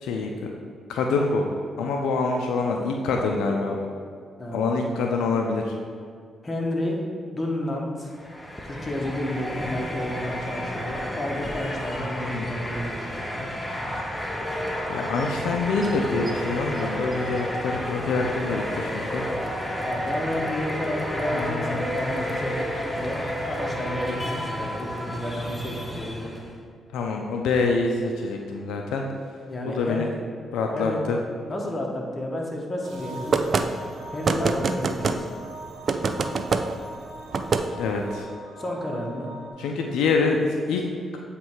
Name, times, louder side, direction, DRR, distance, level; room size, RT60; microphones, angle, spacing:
voice 1, 0.0-0.5 0.9-1.5 1.8-3.8 4.5-5.7 12.3-12.5 14.9-19.3 21.3-22.5 26.9-29.0 29.7-30.1 30.5-31.2 37.8-38.3 39.6-40.8, left 4 dB, 90° left, 1 dB, 0.5 m, -26 dB
voice 2, 4.4-4.8 6.4-7.0 7.3-8.1 8.6-12.9 13.2-13.5 19.6-23.2 23.5-26.3 29.5-30.0 30.7-31.1 31.5-33.6 34.1-35.3 38.6-39.3, left 1 dB, 30° left, -1 dB, 1.3 m, -31 dB
sound 1, 8.1-26.6, equal, 10° left, 1.0 m, -31 dB
sound 2, 32.8-39.5, right 2 dB, 80° right, 1.1 m, -41 dB
sound 3, 33.3-33.7 34.2-35.2 35.9-36.6 37.3-37.6, right 4 dB, 50° right, 0.4 m, -23 dB
8.1 x 3.3 x 4.6 m, 2.1 s
cardioid pair, 70°, 0 cm